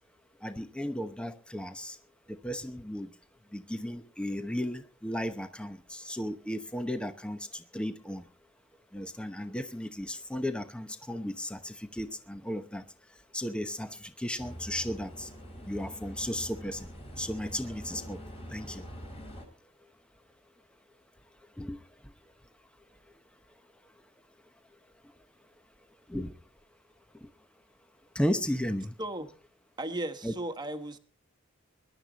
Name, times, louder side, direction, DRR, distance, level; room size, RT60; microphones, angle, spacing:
voice 1, 0.4-2.0 2.3-3.1 3.5-8.2 8.9-12.8 13.3-15.3 15.7-16.9 17.2-18.2 18.5-18.9 21.6-21.8 26.1-26.4 27.2-27.3 28.1-28.9 30.2-30.3, equal, 5° left, 8 dB, 0.9 m, -35 dB
sound 1, 14.4-19.5, equal, 30° left, 4.5 m, -44 dB
voice 2, 29.8-31.0, right 1 dB, 20° right, 7 dB, 1.4 m, -35 dB
21.5 x 12.0 x 4.0 m, 0.38 s
head